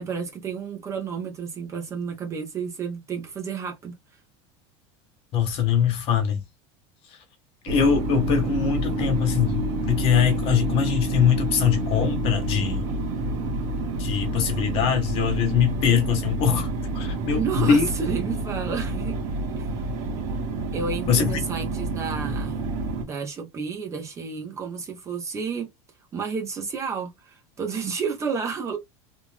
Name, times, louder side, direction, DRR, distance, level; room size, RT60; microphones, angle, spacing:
voice 1, 0.0-4.0 17.3-19.2 19.6-19.7 20.7-22.6 23.0-25.7 26.1-28.8, right 6 dB, 20° right, 0.7 m, -31 dB
voice 2, 5.3-6.4 7.6-12.9 14.0-16.7 16.9-17.9 21.1-21.4, left 7 dB, 40° left, 1.2 m, -22 dB
sound 1, 7.7-23.0, right 2 dB, 45° right, 1.3 m, -28 dB
3.4 x 2.5 x 3.3 m
supercardioid pair, 170°, 15 cm